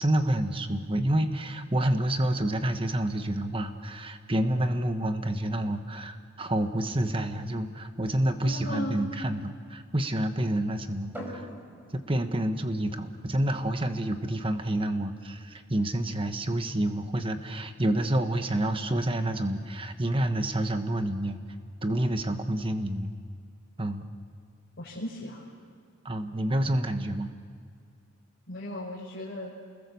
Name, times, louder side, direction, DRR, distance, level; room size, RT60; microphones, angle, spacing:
voice 1, 0.0-11.5 11.9-21.4 21.8-23.1 23.8-24.0 26.0-27.3, right 1 dB, 25° right, 8 dB, 1.3 m, -28 dB
voice 2, 8.4-9.0 24.8-25.4 28.5-29.5, left 1 dB, 60° left, -7 dB, 4.8 m, -36 dB
sound 1, 11.1-24.6, equal, 10° right, 4.7 m, -51 dB
29.0 x 21.0 x 7.1 m, 2.2 s
head